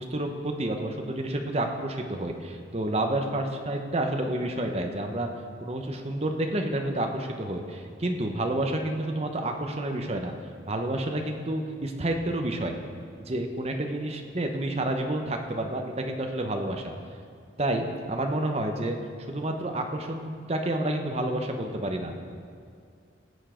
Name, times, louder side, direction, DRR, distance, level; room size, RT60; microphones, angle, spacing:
voice 1, 0.0-5.3 5.6-10.3 10.7-12.8 13.2-16.9 17.6-19.0 19.3-22.1, right 1 dB, 35° right, 4 dB, 1.0 m, -29 dB
17.5 x 7.2 x 5.1 m, 2.2 s
head